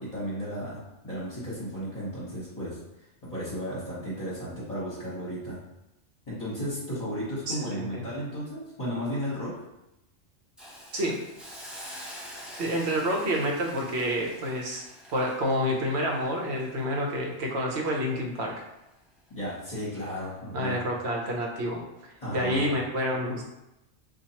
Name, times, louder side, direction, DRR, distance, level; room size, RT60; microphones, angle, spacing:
voice 1, 0.0-2.8 3.2-5.6 6.3-9.5 19.3-20.8 22.2-22.7, equal, 35° left, -11 dB, 1.2 m, -34 dB
voice 2, 7.5-8.0 10.9-11.2 12.6-14.8 15.1-18.5 20.5-21.8 22.3-23.4, equal, 65° right, 0 dB, 1.0 m, -28 dB
Hiss, 10.6-17.6 18.0-18.2, equal, ahead, 0.4 m, -46 dB
4.4 x 2.5 x 2.8 m, 0.90 s
omnidirectional pair, 1.3 m